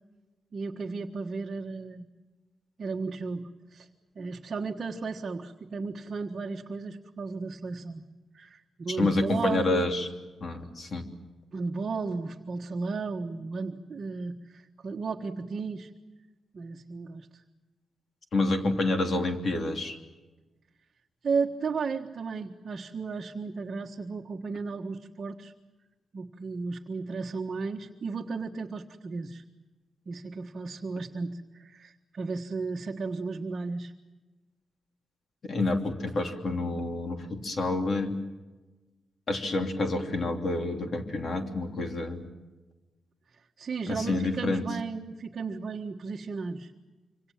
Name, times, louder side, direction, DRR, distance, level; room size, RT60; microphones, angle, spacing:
voice 1, 0.5-2.1 2.8-3.9 4.1-8.0 8.3-9.9 11.5-15.9 16.5-17.3 21.2-25.5 26.1-29.4 30.1-33.9 43.6-46.7, right 4 dB, 35° right, 0 dB, 1.5 m, -34 dB
voice 2, 8.9-10.1 10.4-11.1 18.3-20.0 35.5-38.2 39.3-42.3 43.9-44.6, left 2 dB, 40° left, 4 dB, 3.1 m, -28 dB
26.5 x 25.5 x 7.4 m, 1.2 s
wide cardioid pair, 175°, 0 cm